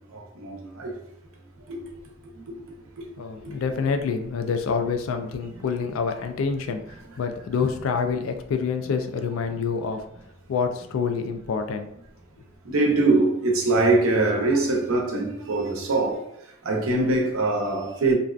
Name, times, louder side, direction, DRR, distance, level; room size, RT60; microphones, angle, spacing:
voice 1, 0.1-0.9 1.7-1.8 3.0-3.1 3.4-3.5 12.6-16.2 16.6-18.1, right 2 dB, 90° right, 0.6 m, -23 dB
voice 2, 3.2-10.0 10.5-11.9, left 5 dB, 75° left, 0.3 m, -27 dB
2.5 x 2.2 x 2.3 m
head